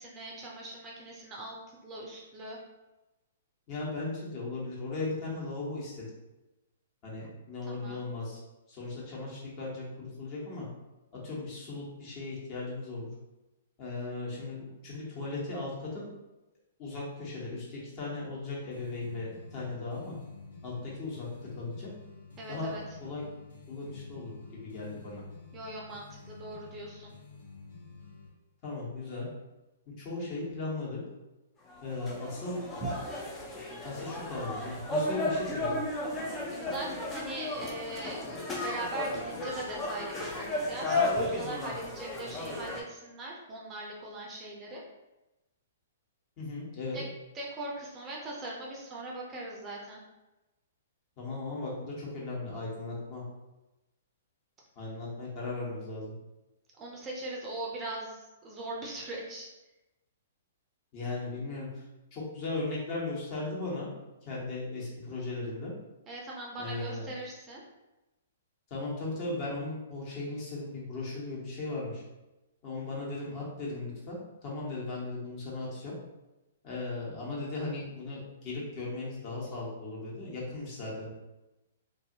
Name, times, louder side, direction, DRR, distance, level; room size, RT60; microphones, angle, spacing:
voice 1, 0.0-1.6 1.8-2.6 7.6-8.0 22.4-22.8 25.5-27.1 32.8-32.9 36.5-38.2 38.6-44.8 46.9-47.0 47.3-50.0 56.8-59.5 66.1-67.6, right 2 dB, 25° right, -2 dB, 0.6 m, -40 dB
voice 2, 3.7-6.1 7.0-8.4 8.7-10.7 11.2-13.1 13.8-16.1 16.8-20.2 20.6-21.3 21.5-21.9 22.5-22.7 23.0-23.2 23.7-25.2 28.6-29.3 30.0-31.0 31.8-32.6 33.8-35.8 46.4-47.0 51.2-53.2 54.8-56.1 60.9-61.8 62.1-63.9 64.2-65.7 66.6-67.1 68.7-72.0 72.6-74.2 74.4-75.9 76.6-81.1, left 2 dB, 35° left, -5 dB, 1.2 m, -37 dB
sound 1, 18.7-28.3, left 4 dB, 85° left, 1.4 m, -50 dB
sound 2, 31.7-42.8, left 2 dB, 20° left, 0.5 m, -34 dB
2.6 x 2.6 x 2.8 m, 1.0 s
hypercardioid pair, 130°, 0 cm